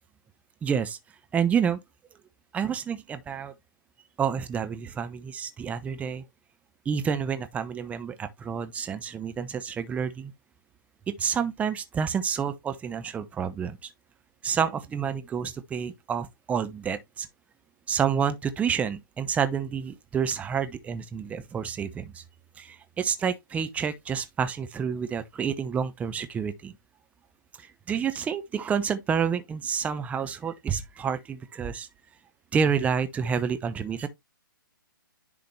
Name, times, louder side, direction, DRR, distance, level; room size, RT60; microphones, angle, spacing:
voice 1, 0.6-1.0 1.3-1.8 2.5-3.5 4.2-6.2 6.9-10.3 11.1-13.9 14.4-17.3 17.9-22.2 22.6-26.7 27.6-31.9 32.5-34.1, right 7 dB, 10° right, 0.7 m, -29 dB
10.5 x 3.8 x 3.1 m
figure-of-eight pair, 130°, 12 cm